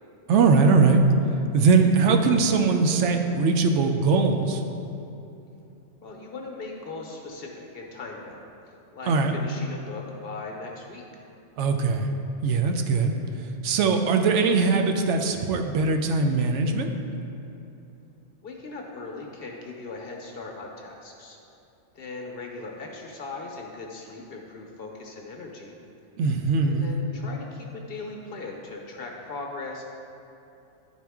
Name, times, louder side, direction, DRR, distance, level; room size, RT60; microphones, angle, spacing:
voice 1, 0.3-1.0 1.5-4.6 9.1-9.4 11.6-12.1 12.4-16.9 26.2-26.9, right 4 dB, 75° right, 4 dB, 0.9 m, -21 dB
voice 2, 6.0-8.5 8.9-11.2 18.4-21.4 21.9-25.8 26.6-29.8, left 3 dB, 55° left, 0 dB, 0.9 m, -39 dB
10.0 x 4.3 x 3.5 m, 2.8 s
omnidirectional pair, 1.3 m